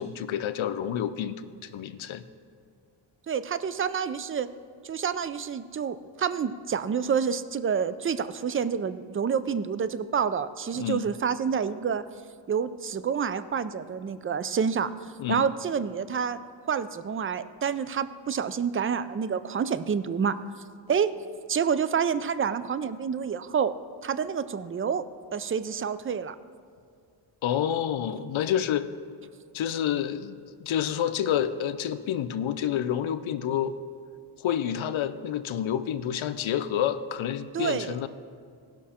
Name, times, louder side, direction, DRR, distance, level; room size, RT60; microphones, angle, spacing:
voice 1, 0.0-2.2 10.7-11.1 15.2-15.5 27.4-28.9 29.5-33.7 34.4-38.1, left 9 dB, 70° left, 11 dB, 0.7 m, -29 dB
voice 2, 3.3-4.5 4.8-12.0 12.5-14.9 15.3-16.4 16.7-20.4 20.9-21.1 21.5-23.7 24.0-25.0 25.3-26.4 37.5-38.0, right 7 dB, 30° right, 13 dB, 0.4 m, -28 dB
17.0 x 6.1 x 4.3 m, 2.3 s
cardioid pair, 85°, 49 cm